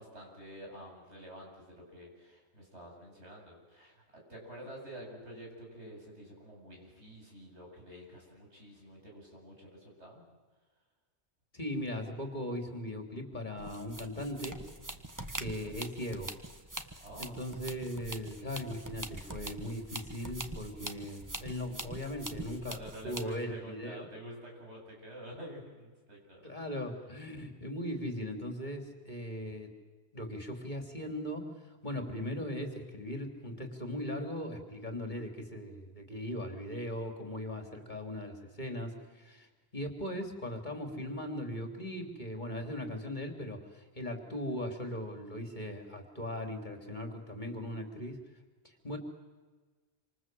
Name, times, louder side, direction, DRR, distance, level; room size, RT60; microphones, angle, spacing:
voice 1, 0.0-10.2 15.0-15.3 17.0-17.4 19.4-19.5 22.7-26.7, equal, 85° right, 0 dB, 8.3 m, -49 dB
voice 2, 11.5-14.6 15.3-16.3 17.2-22.8 23.0-24.1 26.4-29.7 30.1-31.5 31.8-39.5 39.7-48.2 48.6-49.0, equal, 45° left, 4 dB, 3.4 m, -39 dB
sound 1, 13.6-23.4, right 1 dB, 15° right, 1.4 m, -44 dB
27.0 x 26.5 x 7.8 m, 1.3 s
omnidirectional pair, 1.1 m